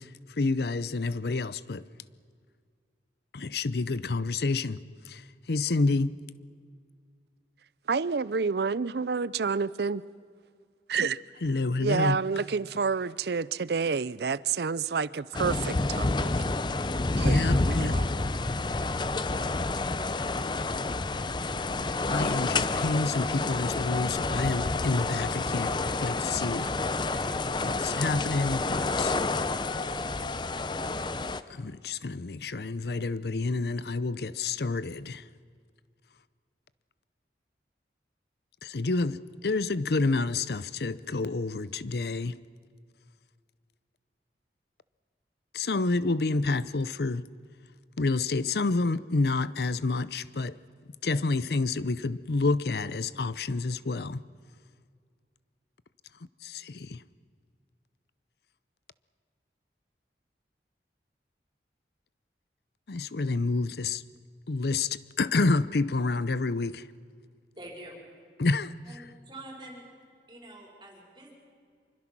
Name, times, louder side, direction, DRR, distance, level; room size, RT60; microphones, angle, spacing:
voice 1, 0.4-1.8 3.3-4.8 5.1-5.2 5.5-6.1 11.4-12.2 17.2-18.0 22.1-25.7 26.0-26.7 27.6-29.2 31.5-35.2 38.6-42.4 45.5-47.3 48.0-50.5 51.0-54.2 56.4-57.0 62.9-64.0 64.5-66.8 68.4-68.7, left 3 dB, 65° left, 0.6 m, -28 dB
voice 2, 7.9-10.0 10.9-11.2 11.8-16.3 17.2-18.1, right 5 dB, 65° right, 0.5 m, -29 dB
sound 1, 15.3-31.4, left 3 dB, 25° left, 0.6 m, -29 dB
voice 3, 67.5-68.0 68.8-69.9 70.3-71.3, right 1 dB, 25° right, 5.0 m, -46 dB
26.0 x 24.0 x 6.1 m
head